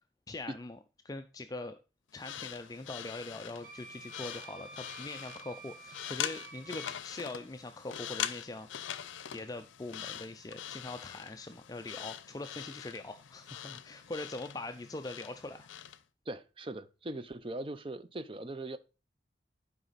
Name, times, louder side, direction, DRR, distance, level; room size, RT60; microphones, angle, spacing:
voice 1, 0.3-0.8 1.0-1.8 2.1-8.7 9.3-15.7, left 2 dB, 20° left, 0.4 m, -42 dB
sound 1, 2.1-16.0, left 10 dB, 90° left, 0.5 m, -43 dB
Wind instrument woodwind instrument, 3.6-7.0, right 4 dB, 45° right, 1.4 m, -50 dB
voice 2, 16.3-18.8, right 1 dB, 30° right, 0.6 m, -40 dB
11.0 x 4.9 x 4.1 m
head